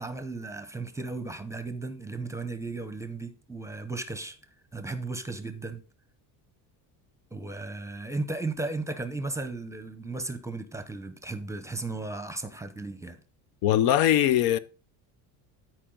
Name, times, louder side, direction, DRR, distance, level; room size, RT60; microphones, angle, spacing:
voice 1, 0.0-4.4 4.7-5.8 7.3-13.2, right 3 dB, 5° right, 0.7 m, -35 dB
voice 2, 13.6-14.6, left 11 dB, 60° left, 0.7 m, -21 dB
13.5 x 4.6 x 3.8 m
cardioid pair, 125°, 40 cm